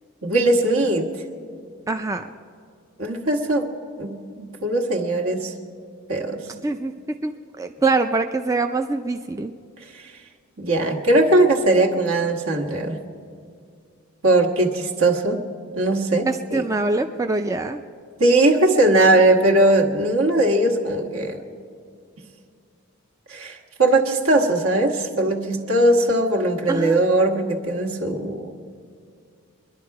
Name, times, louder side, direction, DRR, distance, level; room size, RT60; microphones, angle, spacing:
voice 1, 0.2-1.1 3.0-3.7 4.0-5.5 6.1-6.5 9.9-10.1 10.6-13.0 14.2-15.4 15.7-16.6 18.2-21.4 23.3-28.5, right 2 dB, 70° right, 1 dB, 1.5 m, -19 dB
voice 2, 1.9-2.2 6.5-6.9 7.2-9.5 16.2-17.8 26.7-27.0, right 3 dB, 15° right, 6 dB, 0.3 m, -24 dB
24.5 x 11.0 x 4.7 m, 2.3 s
head